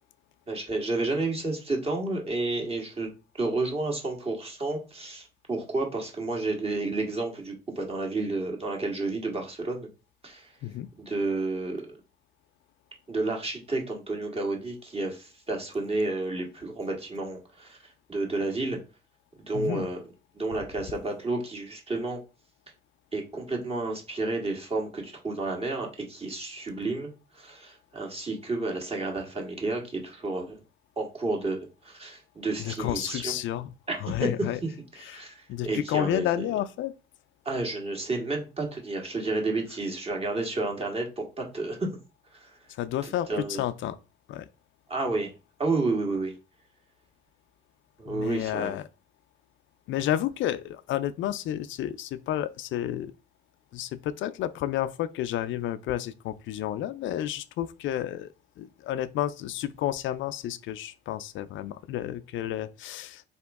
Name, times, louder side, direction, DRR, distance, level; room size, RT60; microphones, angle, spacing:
voice 1, 0.5-3.1 3.3-9.9 10.2-10.5 11.0-12.0 13.1-18.8 19.4-20.0 20.3-22.2 23.1-27.1 27.3-30.6 31.0-33.4 33.9-34.3 34.9-36.2 37.4-41.9 42.3-42.5 43.0-43.6 44.9-45.3 45.6-46.3 48.0-48.7, right 2 dB, 30° right, 1.7 m, -31 dB
voice 2, 19.5-19.9 32.6-33.7 34.0-34.6 35.0-36.9 42.7-44.0 44.3-44.5 48.1-48.9 49.9-53.1 53.7-63.2, left 12 dB, 75° left, 0.4 m, -31 dB
4.2 x 2.9 x 3.5 m
cardioid pair, 90°, 20 cm